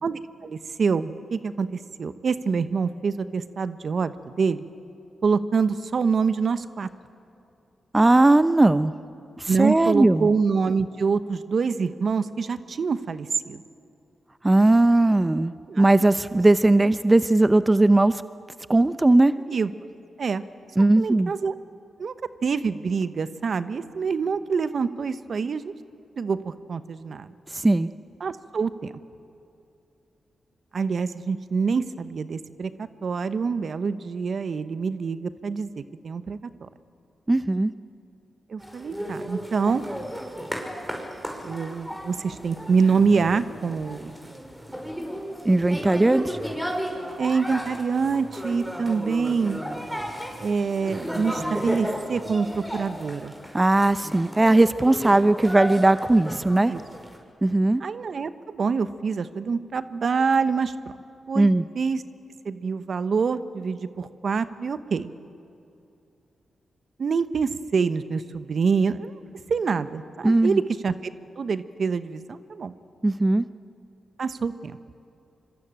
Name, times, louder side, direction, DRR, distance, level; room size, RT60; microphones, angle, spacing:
voice 1, 0.0-4.6 5.2-6.9 9.5-13.6 15.7-15.9 19.5-19.7 20.2-20.4 21.0-21.5 22.0-22.1 22.4-25.6 26.2-27.3 28.2-28.9 30.7-36.7 38.5-39.8 41.4-44.1 47.2-49.6 50.4-53.3 56.7-56.8 57.8-60.7 61.3-61.5 61.8-62.0 62.4-65.1 67.0-69.1 69.5-72.7 74.2-74.8, right 5 dB, 60° right, 12 dB, 1.0 m, -26 dB
voice 2, 7.9-8.9 9.4-10.3 14.4-18.2 18.7-19.3 20.8-21.3 27.5-27.9 37.3-37.7 45.4-46.4 53.5-56.7 57.4-57.8 61.3-61.6 70.2-70.6 73.0-73.4, right 2 dB, 25° right, 13 dB, 0.7 m, -18 dB
sound 1, 38.6-57.2, equal, 5° right, 5.8 m, -34 dB
25.0 x 24.0 x 8.9 m, 2.7 s
supercardioid pair, 45°, 0 cm